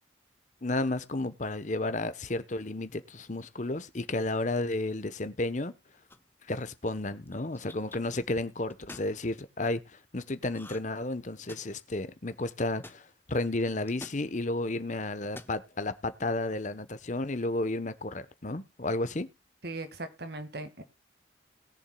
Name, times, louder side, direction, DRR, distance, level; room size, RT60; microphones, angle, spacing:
voice 1, 0.6-5.7 6.5-19.3, left 2 dB, 40° left, 1.0 m, -32 dB
sound 1, 6.1-6.5 7.3-8.0 8.7-9.1 10.5-11.0 11.2-11.9 12.8-13.0 13.9-14.2 15.2-15.6, left 2 dB, 10° left, 0.9 m, -46 dB
voice 2, 19.6-20.8, right 2 dB, 55° right, 1.9 m, -39 dB
20.5 x 7.3 x 2.3 m
head